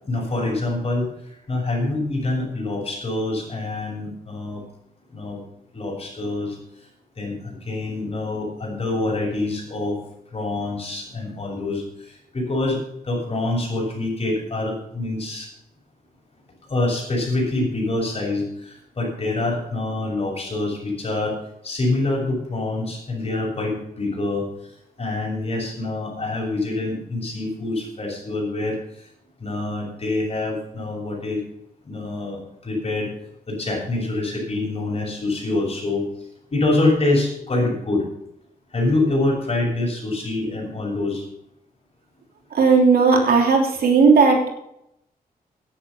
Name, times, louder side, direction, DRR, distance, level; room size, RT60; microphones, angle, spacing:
voice 1, 0.0-1.1 1.5-4.6 5.1-5.4 5.7-6.6 7.2-10.0 10.3-15.5 16.7-21.4 21.6-24.5 25.0-28.8 29.4-31.4 31.9-33.1 33.5-36.0 36.5-38.0 38.7-41.3, left 2 dB, 40° left, 0 dB, 6.9 m, -25 dB
voice 2, 42.5-44.5, right 4 dB, 85° right, 2 dB, 3.2 m, -15 dB
10.5 x 10.0 x 7.0 m, 0.78 s
cardioid pair, 100°, 15 cm